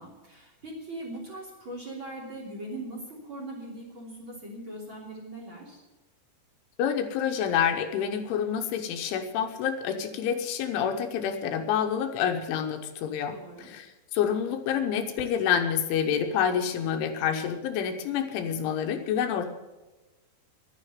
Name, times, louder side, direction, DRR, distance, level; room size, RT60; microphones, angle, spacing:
voice 1, 0.0-5.8 13.3-13.7, right 1 dB, 30° right, -2 dB, 3.2 m, -40 dB
voice 2, 6.8-19.5, left 8 dB, 80° left, 6 dB, 3.3 m, -28 dB
12.0 x 9.9 x 9.4 m, 1.1 s
omnidirectional pair, 5.7 m